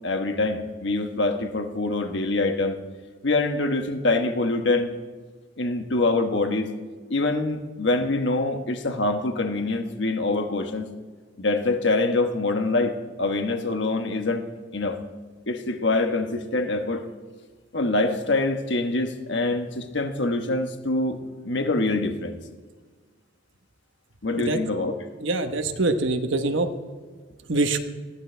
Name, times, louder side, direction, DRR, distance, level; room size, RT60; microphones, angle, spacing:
voice 1, 0.0-2.8 3.2-4.9 5.6-6.7 7.1-10.9 11.4-14.4 14.7-15.0 15.5-17.0 17.7-21.2 21.4-22.4 24.2-24.9 27.2-27.3, left 2 dB, 65° left, 6 dB, 1.3 m, -25 dB
voice 2, 25.2-26.7 27.5-27.8, right 2 dB, 85° right, 6 dB, 1.2 m, -24 dB
20.0 x 14.5 x 3.4 m, 1.5 s
head